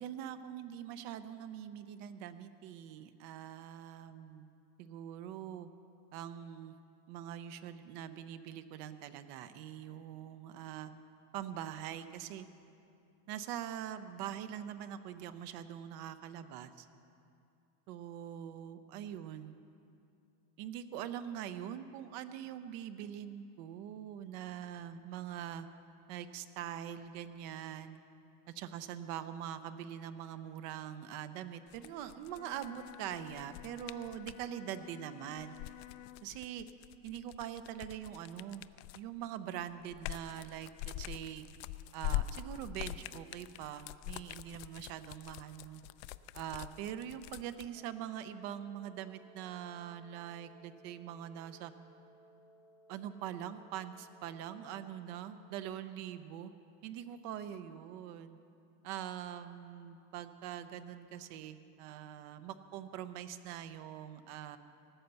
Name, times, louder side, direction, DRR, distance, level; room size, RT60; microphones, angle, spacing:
voice 1, 0.0-4.5 4.8-5.7 6.1-6.7 7.1-10.9 11.3-12.5 13.3-16.9 17.9-19.5 20.6-25.7 26.1-28.0 28.5-35.5 36.2-36.7 37.0-38.6 38.9-41.4 41.9-45.8 46.3-51.7 52.9-56.5 56.8-58.4 58.8-64.6, right 10 dB, 75° right, 11 dB, 0.8 m, -43 dB
sound 1, 31.7-34.5 35.4-39.2 39.6-47.7, left 14 dB, 85° left, 0.5 m, -43 dB
Bowed string instrument, 32.2-36.4, left 17 dB, 40° left, 0.5 m, -53 dB
Wind instrument woodwind instrument, 47.7-55.6, right 1 dB, 5° right, 0.6 m, -62 dB
18.0 x 8.0 x 6.8 m, 2.6 s
cardioid pair, 145°, 47 cm